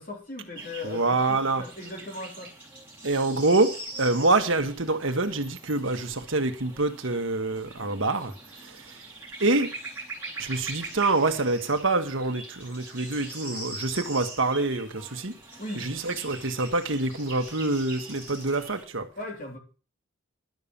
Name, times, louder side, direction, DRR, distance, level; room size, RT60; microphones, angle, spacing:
voice 1, 0.0-2.5 15.6-15.8 19.2-19.6, left 2 dB, 40° left, 3.4 m, -38 dB
sound 1, 0.6-18.8, right 2 dB, 10° right, 5.1 m, -42 dB
voice 2, 0.8-1.6 3.0-3.7 4.0-8.3 9.4-9.7 10.4-15.3 15.8-19.1, right 2 dB, 70° right, 1.4 m, -26 dB
12.0 x 6.9 x 7.2 m
head